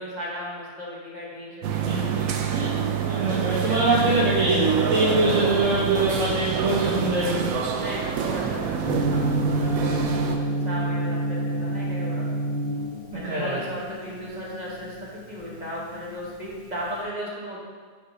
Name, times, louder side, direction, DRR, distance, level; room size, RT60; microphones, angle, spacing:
voice 1, 0.0-2.3 3.2-4.1 7.7-12.3 13.1-14.9 15.3-17.6, equal, 30° right, -5 dB, 1.3 m, -36 dB
sound 1, 1.6-10.4, right 7 dB, 85° right, 1.1 m, -26 dB
voice 2, 1.8-2.2 2.5-2.7 3.1-4.6 4.9-7.6 13.2-13.6, right 2 dB, 65° right, -9 dB, 1.6 m, -23 dB
Gong, 8.8-16.9, right 1 dB, 20° left, 1.1 m, -28 dB
5.8 x 4.2 x 5.0 m, 1.5 s
omnidirectional pair, 1.5 m